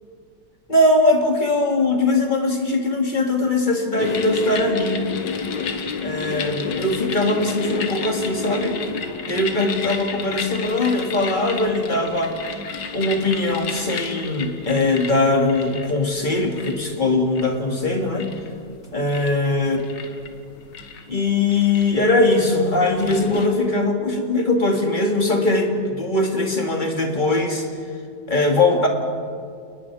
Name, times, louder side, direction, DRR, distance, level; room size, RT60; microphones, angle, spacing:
voice 1, 0.7-5.1 6.0-8.8 9.3-12.3 12.9-18.3 18.9-19.8 21.1-27.7 28.3-28.9, left 2 dB, 25° left, 2 dB, 2.4 m, -21 dB
sound 1, 4.0-23.5, left 5 dB, 90° left, 1.9 m, -32 dB
30.0 x 19.5 x 4.9 m, 2.2 s
omnidirectional pair, 1.9 m